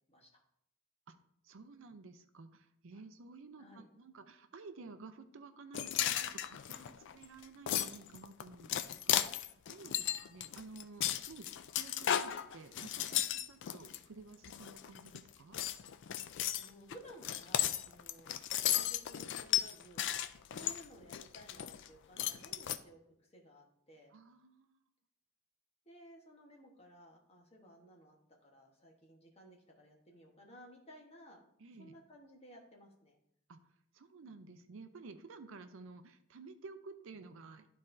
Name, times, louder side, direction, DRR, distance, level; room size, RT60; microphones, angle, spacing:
voice 1, 0.1-0.4 3.6-3.8 6.7-6.9 9.8-10.0 16.3-18.3 18.6-20.1 20.5-24.1 25.8-28.2 28.4-31.4 31.8-33.2, equal, 25° left, 0 dB, 1.1 m, -57 dB
voice 2, 1.4-15.6 24.1-24.8 31.6-32.0 33.5-37.7, right 4 dB, 60° right, 9 dB, 0.5 m, -53 dB
sound 1, 5.7-14.0 14.4-15.2 15.5-21.9 22.2-22.8, left 11 dB, 55° left, 0.3 m, -35 dB
12.0 x 4.2 x 2.6 m, 0.75 s
head